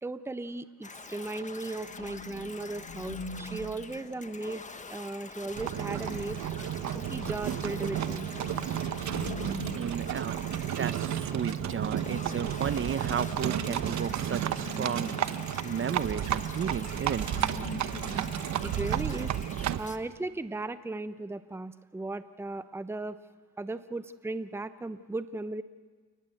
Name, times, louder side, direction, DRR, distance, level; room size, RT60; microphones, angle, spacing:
voice 1, 0.0-4.6 4.9-6.4 6.9-8.3 18.6-19.3 19.8-23.2 23.6-25.6, right 2 dB, 10° right, 12 dB, 0.8 m, -36 dB
sound 1, 0.8-20.0, left 4 dB, 25° left, 1.4 m, -46 dB
sound 2, 1.7-4.6 5.5-5.6 5.9-16.1 16.6-19.3, left 2 dB, 50° left, 6.7 m, -44 dB
Livestock farm animals working animals, 5.6-19.9, right 10 dB, 65° right, 1.1 m, -32 dB
voice 2, 9.7-15.2 15.6-17.3, right 7 dB, 40° right, 14 dB, 0.9 m, -33 dB
29.5 x 19.5 x 7.8 m, 1.5 s
cardioid pair, 90°, 30 cm